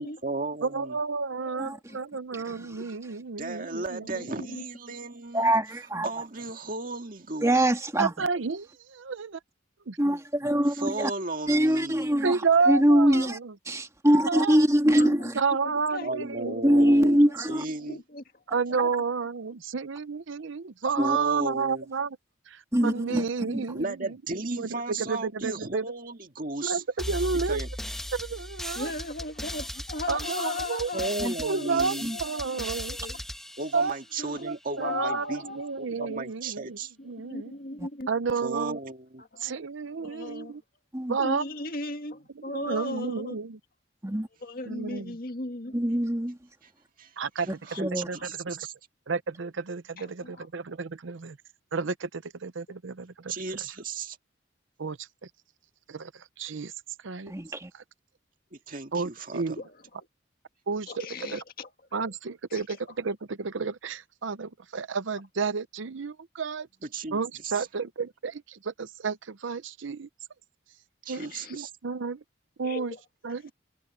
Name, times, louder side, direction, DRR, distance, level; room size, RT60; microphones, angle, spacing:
voice 1, 0.0-1.0 3.4-5.5 6.0-7.6 10.6-12.1 16.0-18.0 21.0-21.9 23.7-26.8 27.5-27.7 30.9-32.1 33.6-35.4 35.8-36.9 38.4-39.2 46.6-46.7 47.0-48.7 53.3-54.2 58.5-59.6 66.8-67.7 71.0-71.7, right 2 dB, 45° right, 2.0 m, -35 dB
voice 2, 0.6-4.0 8.0-9.4 9.9-10.0 12.2-13.5 14.3-14.6 15.3-17.2 18.5-22.1 22.5-24.2 24.6-25.8 26.6-27.6 28.1-28.9 30.1-30.9 31.4-33.0 33.7-33.9 34.4-36.8 37.0-37.5 38.1-38.8 39.4-40.6 41.1-41.4 42.5-43.6 44.7-45.2 47.2-47.5 48.1-48.2 48.4-48.6 49.1-51.4 51.7-53.3 54.8-55.1 55.9-56.7 57.0-57.3 57.7-57.8 58.9-59.5 60.7-61.4 61.9-66.7 67.1-70.1 71.1-72.2 72.6-72.9 73.2-73.5, right 5 dB, 80° right, 0.7 m, -31 dB
voice 3, 1.4-1.8 4.0-4.6 14.9-15.3 15.6-18.2 18.8-18.9 28.8-32.6 32.9-33.2 34.2-34.4 34.8-36.2 37.2-38.1 39.2-39.6 40.0-40.6 41.2-43.4 44.4-45.8 47.7-47.8 50.0-50.5 59.6-59.8 60.9-61.7 62.5-62.6 71.1-71.6 72.6-73.0, left 2 dB, 50° left, 1.9 m, -37 dB
voice 4, 2.3-2.9 5.3-6.1 7.4-8.1 10.0-11.1 11.5-12.4 12.7-13.4 13.7-15.3 16.6-17.6 21.0-21.5 22.7-23.7 31.2-31.3 32.0-32.2 37.8-37.9 40.9-41.2 44.0-44.3 45.7-46.4 47.8-48.1 57.3-57.7, equal, 15° right, 2.0 m, -23 dB
sound 1, 27.0-34.5, equal, ahead, 1.2 m, -37 dB
head